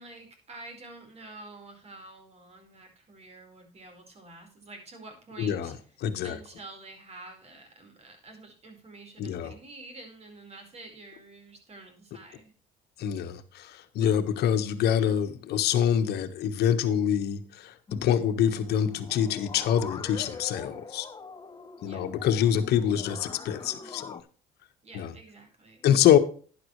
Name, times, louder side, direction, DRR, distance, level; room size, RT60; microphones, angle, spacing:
voice 1, 0.0-5.7 6.2-12.5 21.8-22.0 24.8-26.1, right 2 dB, 40° right, 5 dB, 4.7 m, -48 dB
voice 2, 5.4-5.7 6.0-6.4 9.2-9.5 13.0-21.1 21.8-24.2 24.9-25.1 25.8-26.2, left 9 dB, 75° left, 8 dB, 1.4 m, -25 dB
sound 1, 17.9-24.2, left 5 dB, 25° left, 1.0 m, -44 dB
11.5 x 10.5 x 3.2 m, 0.40 s
cardioid pair, 110°, 17 cm